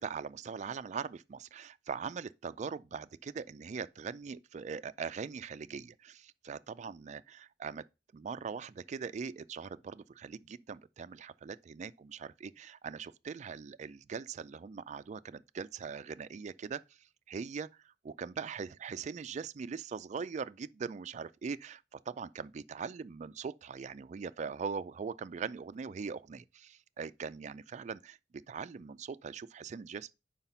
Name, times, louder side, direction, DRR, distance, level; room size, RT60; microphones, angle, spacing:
voice 1, 0.0-7.8 8.1-16.8 17.3-28.2 28.5-30.1, right 5 dB, 40° right, 0.3 m, -41 dB
5.7 x 4.9 x 5.5 m
head